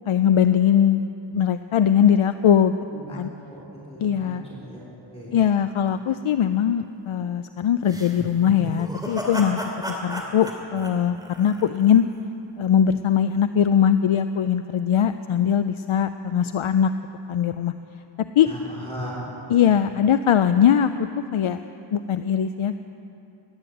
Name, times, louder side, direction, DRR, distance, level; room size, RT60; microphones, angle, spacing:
voice 1, 0.1-1.0 1.3-2.8 3.1-3.3 4.0-4.4 5.3-9.6 9.9-12.0 12.6-16.9 17.3-17.7 18.4-18.5 19.5-20.9 21.2-21.6 21.9-22.8, left 9 dB, 80° left, 10 dB, 0.5 m, -20 dB
voice 2, 3.5-5.3 18.4-19.3, equal, 10° left, -6 dB, 3.6 m, -37 dB
sound 1, 7.9-12.0, equal, 10° right, 2.5 m, -33 dB
18.0 x 10.0 x 7.9 m, 2.9 s
wide cardioid pair, 65°, 49 cm